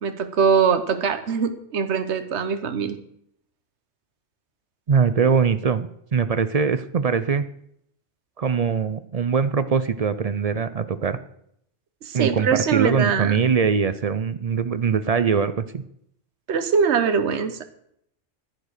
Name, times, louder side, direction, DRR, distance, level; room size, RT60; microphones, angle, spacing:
voice 1, 0.0-3.0 12.0-13.4 16.5-17.7, right 6 dB, 65° right, 9 dB, 1.3 m, -22 dB
voice 2, 4.9-7.5 8.4-11.2 12.1-15.8, right 6 dB, 50° right, 12 dB, 0.5 m, -22 dB
10.5 x 9.9 x 6.6 m, 0.72 s
omnidirectional pair, 1.3 m